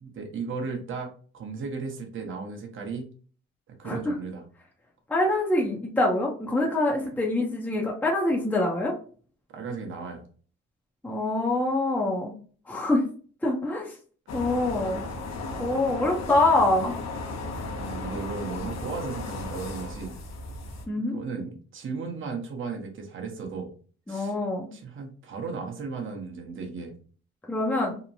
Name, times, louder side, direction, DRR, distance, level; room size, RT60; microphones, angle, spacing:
voice 1, 0.0-3.1 3.8-4.4 9.5-10.2 17.7-20.1 21.0-23.7 24.1-24.3 24.7-26.9, right 4 dB, 40° right, 2 dB, 0.8 m, -35 dB
voice 2, 5.1-8.9 11.0-12.4 12.7-13.0 13.4-13.9 14.3-15.0 15.6-17.0 20.9-21.2 24.1-24.7 27.5-28.0, left 2 dB, 5° left, -2 dB, 0.6 m, -25 dB
sound 1, 14.3-20.8, left 2 dB, 60° left, 0.7 m, -35 dB
2.9 x 2.1 x 2.6 m, 0.42 s
cardioid pair, 90°, 30 cm